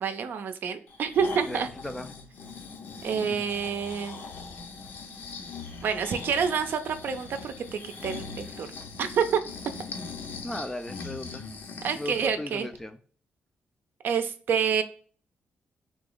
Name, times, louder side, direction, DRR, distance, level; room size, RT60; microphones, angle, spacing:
voice 1, 0.0-1.7 3.0-4.2 5.8-8.7 9.0-9.4 11.8-12.7 14.0-14.8, right 7 dB, 65° right, 0.5 m, -28 dB
Breathing, 0.9-12.3 12.7-12.8, left 4 dB, 70° left, 0.7 m, -41 dB
voice 2, 1.5-2.1 10.4-11.5 11.9-13.0, left 1 dB, 10° left, 0.3 m, -36 dB
3.8 x 3.0 x 3.8 m
wide cardioid pair, 160°, 4 cm